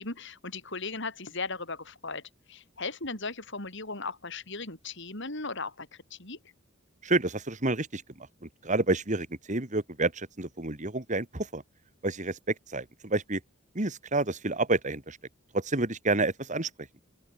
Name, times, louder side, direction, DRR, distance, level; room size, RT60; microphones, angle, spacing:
voice 1, 0.0-2.2 2.5-6.4, left 3 dB, 60° left, 7.6 m, -37 dB
voice 2, 7.0-11.6 12.0-13.4 13.8-15.2 15.5-16.7, right 2 dB, 35° right, 2.2 m, -29 dB
open air
head